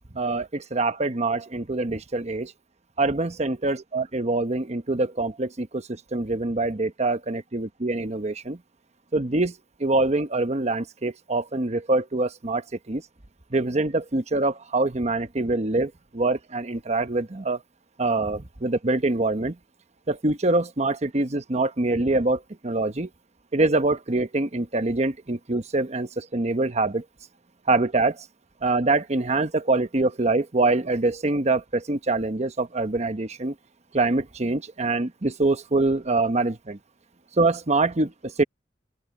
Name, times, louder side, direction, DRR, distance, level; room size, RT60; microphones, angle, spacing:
voice 1, 0.1-2.5 3.0-8.6 9.1-9.5 9.8-13.0 13.5-17.6 18.0-19.6 20.1-23.1 23.5-27.0 27.7-28.2 28.6-33.5 33.9-36.8 37.4-38.4, right 2 dB, 40° right, 1.1 m, -24 dB
open air
head